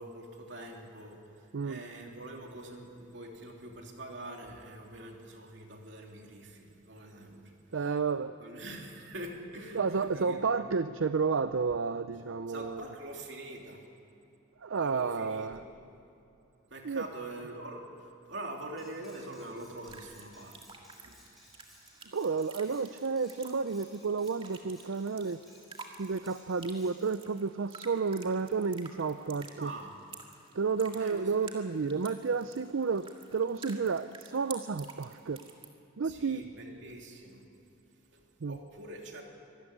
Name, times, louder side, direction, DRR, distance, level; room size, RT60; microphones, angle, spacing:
voice 1, 0.0-7.5 8.4-10.4 12.5-13.8 14.8-15.6 16.7-21.2 29.6-29.9 31.0-31.5 36.0-37.4 38.1-39.2, right 1 dB, 60° right, 1 dB, 3.1 m, -44 dB
voice 2, 7.7-8.4 9.7-12.9 14.6-15.6 16.8-17.0 22.1-25.4 26.0-29.7 30.5-35.4 36.0-36.5 38.4-38.6, right 5 dB, 80° right, 11 dB, 0.5 m, -31 dB
Cutlery silverware, 18.8-27.2, left 1 dB, ahead, 5.7 m, -60 dB
sound 1, 19.8-35.7, right 4 dB, 25° right, 2.2 m, -51 dB
25.5 x 14.0 x 9.7 m, 2.7 s
head